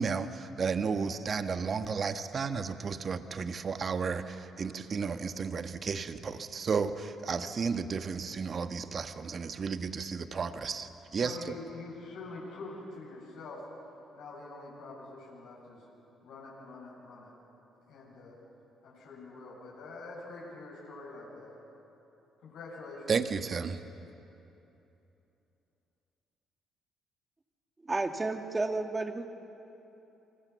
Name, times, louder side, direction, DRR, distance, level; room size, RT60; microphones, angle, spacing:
voice 1, 0.0-11.5 23.1-23.8, right 5 dB, 45° right, 9 dB, 1.5 m, -33 dB
voice 2, 11.2-13.6 14.1-15.8 16.2-17.3 17.9-18.4 18.8-21.6 22.4-23.1, left 3 dB, 70° left, -5 dB, 7.6 m, -45 dB
voice 3, 27.8-29.3, right 3 dB, 25° right, 6 dB, 2.3 m, -31 dB
29.5 x 25.0 x 7.1 m, 3.0 s
hypercardioid pair, 50°, 0 cm